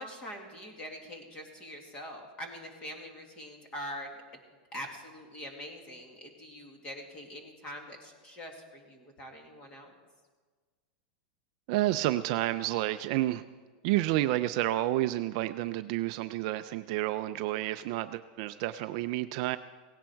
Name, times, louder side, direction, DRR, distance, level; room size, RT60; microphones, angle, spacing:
voice 1, 0.0-4.1 4.7-9.9, equal, 20° left, 2 dB, 2.1 m, -43 dB
voice 2, 11.7-13.4 13.8-19.6, right 16 dB, 40° right, 10 dB, 0.4 m, -30 dB
17.0 x 16.5 x 4.6 m, 1.5 s
supercardioid pair, 180°, 5 cm